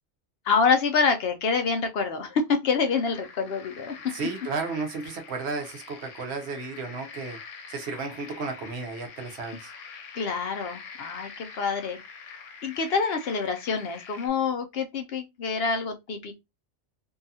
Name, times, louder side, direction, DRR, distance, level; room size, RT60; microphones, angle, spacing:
voice 1, 0.5-4.0 10.1-12.0 12.6-16.4, left 5 dB, 65° left, 0.7 m, -26 dB
sound 1, 2.8-14.3, left 5 dB, 90° left, 1.0 m, -45 dB
voice 2, 4.1-7.4 7.7-9.7, right 4 dB, 65° right, 0.9 m, -33 dB
2.6 x 2.3 x 2.6 m
omnidirectional pair, 1.2 m